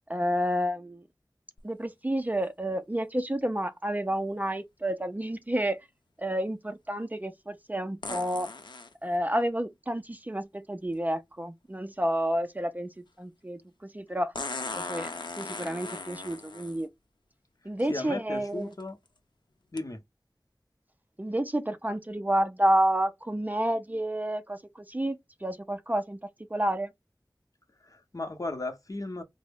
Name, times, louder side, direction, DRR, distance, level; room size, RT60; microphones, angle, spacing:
voice 1, 0.1-1.0 1.6-5.9 6.2-8.5 9.0-14.3 14.6-15.1 15.4-16.9 17.6-18.7 21.2-25.2 25.4-26.2 26.5-26.9, right 1 dB, 20° right, 0.4 m, -30 dB
sound 1, 1.6-1.7 8.0-8.9 10.9-11.0 14.3-16.8 17.8-17.9 18.5-18.8 19.8-19.9, left 3 dB, 80° left, 0.6 m, -38 dB
voice 2, 17.9-19.0 19.7-20.0 27.8-29.2, left 2 dB, 50° left, 0.7 m, -35 dB
3.8 x 2.1 x 3.5 m
wide cardioid pair, 55°, 8 cm